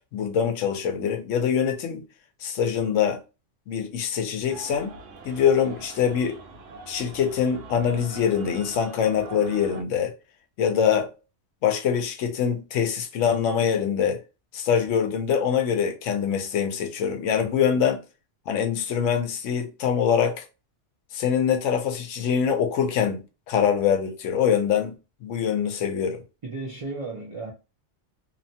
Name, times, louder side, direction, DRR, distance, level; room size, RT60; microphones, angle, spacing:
voice 1, 0.1-2.0 2.4-3.2 3.7-4.9 5.2-6.4 6.9-10.1 10.6-11.1 11.6-14.2 14.5-18.0 18.5-20.5 21.1-25.0 25.2-26.2, left 7 dB, 90° left, 0.9 m, -24 dB
sound 1, 4.5-9.8, right 4 dB, 85° right, 1.0 m, -43 dB
voice 2, 26.4-27.5, right 3 dB, 50° right, 0.4 m, -34 dB
2.8 x 2.2 x 2.6 m
omnidirectional pair, 1.2 m